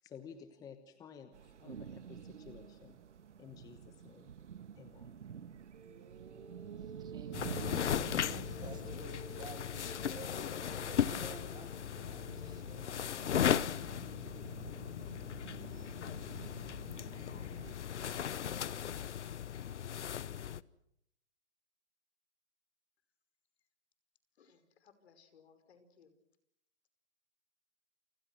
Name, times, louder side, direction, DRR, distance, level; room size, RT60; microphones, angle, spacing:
voice 1, 0.0-3.0 3.4-4.3 4.8-5.1, left 7 dB, 10° left, 10 dB, 1.1 m, -53 dB
sound 1, 1.3-17.7, right 8 dB, 80° right, 1.5 m, -50 dB
sound 2, 5.7-13.1, right 5 dB, 65° right, 3.8 m, -53 dB
voice 2, 6.8-13.6, right 7 dB, 10° right, 10 dB, 1.5 m, -53 dB
sound 3, 7.3-20.6, left 9 dB, 80° left, 1.0 m, -37 dB
voice 3, 24.4-26.1, left 6 dB, 65° left, 10 dB, 5.4 m, -64 dB
29.0 x 27.5 x 6.2 m, 0.76 s
hypercardioid pair, 150°, 35 cm